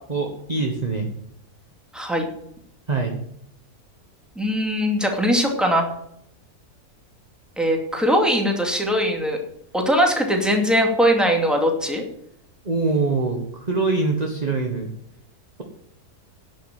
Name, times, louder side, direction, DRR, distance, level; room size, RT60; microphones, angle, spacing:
voice 1, 0.1-1.1 2.9-3.2 12.6-14.9, right 3 dB, 25° right, 2 dB, 1.4 m, -24 dB
voice 2, 1.9-2.3 4.4-5.9 7.6-9.4 9.7-12.0, equal, ahead, 2 dB, 2.4 m, -20 dB
11.0 x 6.7 x 9.1 m, 0.73 s
omnidirectional pair, 1.7 m